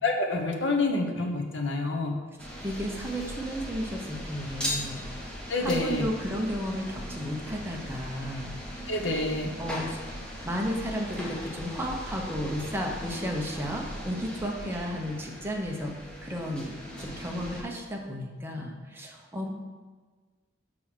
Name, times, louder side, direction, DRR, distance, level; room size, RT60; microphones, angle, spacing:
voice 1, 0.0-2.2 5.5-6.1 8.9-9.5, left 2 dB, 65° left, 2 dB, 1.1 m, -27 dB
sound 1, 2.4-17.6, equal, 5° left, 1.3 m, -39 dB
voice 2, 2.6-5.1 5.6-8.5 9.6-10.0 10.4-15.9 16.2-19.5, equal, 10° right, -1 dB, 1.0 m, -33 dB
6.3 x 5.8 x 6.1 m, 1.4 s
head